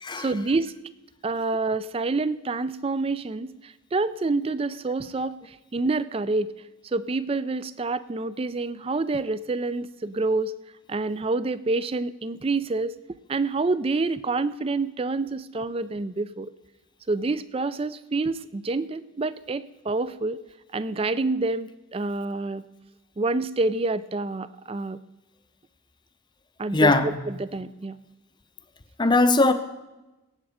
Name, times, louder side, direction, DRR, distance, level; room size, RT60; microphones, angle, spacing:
voice 1, 0.2-0.7 1.2-6.5 6.8-10.5 10.9-13.0 13.3-16.5 17.1-20.4 20.7-22.7 23.2-25.0 26.6-28.0, right 3 dB, 25° right, 0.3 m, -27 dB
voice 2, 26.7-27.1 29.0-29.5, left 2 dB, 20° left, 0.6 m, -19 dB
17.0 x 7.8 x 4.9 m
head